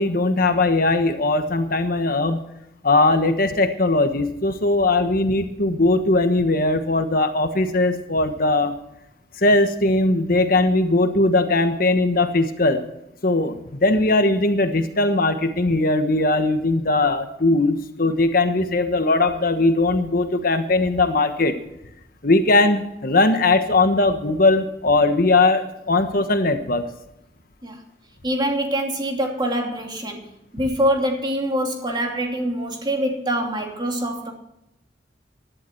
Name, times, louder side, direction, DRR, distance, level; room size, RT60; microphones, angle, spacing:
voice 1, 0.0-2.4 2.8-8.7 9.4-12.8 13.2-21.5 22.2-26.8, left 2 dB, 55° left, 8 dB, 1.2 m, -19 dB
voice 2, 28.2-30.2 30.5-34.3, equal, 25° right, 2 dB, 2.8 m, -24 dB
16.5 x 11.5 x 4.5 m, 0.84 s
head